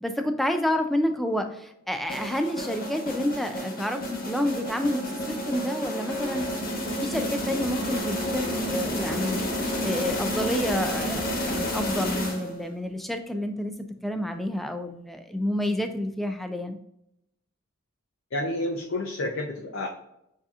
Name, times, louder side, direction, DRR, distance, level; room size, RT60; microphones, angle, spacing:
voice 1, 0.0-6.5 7.0-9.4 9.8-13.7 14.0-16.8, left 1 dB, ahead, 6 dB, 0.3 m, -29 dB
sound 1, 2.1-12.8, equal, 40° left, 1.2 m, -30 dB
voice 2, 18.3-19.9, left 1 dB, 65° left, 1 dB, 0.6 m, -30 dB
7.0 x 2.8 x 2.4 m, 0.79 s
head